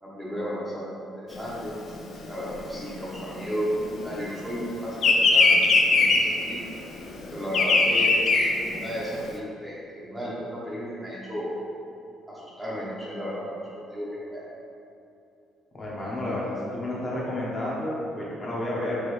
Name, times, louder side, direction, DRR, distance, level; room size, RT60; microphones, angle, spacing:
voice 1, 0.0-1.7 2.3-3.7 4.0-5.6 5.9-6.6 7.3-11.5 12.3-14.4, equal, 10° right, -7 dB, 0.8 m, -34 dB
Bird vocalization bird call bird song, 1.4-4.3 4.6-9.3, left 3 dB, 50° left, 0.4 m, -21 dB
voice 2, 15.7-19.0, left 1 dB, 30° left, -6 dB, 0.9 m, -31 dB
4.8 x 2.9 x 3.1 m, 2.7 s
cardioid pair, 140°, 0 cm